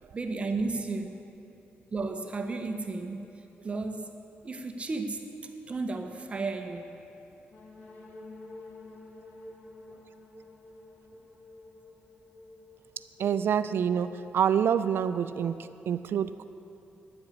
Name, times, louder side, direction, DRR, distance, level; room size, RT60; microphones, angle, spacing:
voice 1, 0.1-1.2 1.9-3.3 3.6-4.1 4.4-5.3 5.7-7.0, right 3 dB, 30° right, 5 dB, 0.8 m, -33 dB
sound 1, 7.5-15.2, left 2 dB, 40° left, 1.7 m, -50 dB
voice 2, 13.2-16.4, right 8 dB, 65° right, 12 dB, 0.4 m, -27 dB
10.5 x 7.9 x 9.7 m, 2.8 s
cardioid pair, 130°, 4 cm